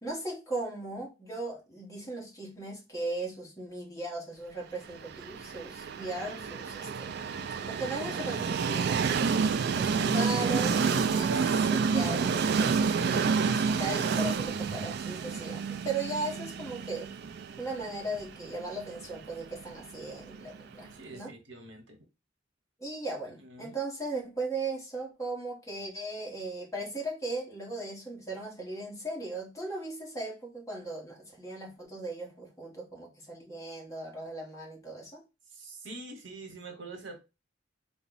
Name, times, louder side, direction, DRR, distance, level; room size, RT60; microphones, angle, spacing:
voice 1, 0.0-9.2 9.7-17.1 17.6-21.3 22.8-35.2, right 2 dB, 15° left, 1.4 m, -37 dB
Train, 5.0-20.9, right 5 dB, 60° right, 0.4 m, -29 dB
voice 2, 20.9-22.0 23.4-23.8 35.5-37.2, right 2 dB, 85° right, 1.2 m, -45 dB
4.1 x 2.3 x 3.9 m
head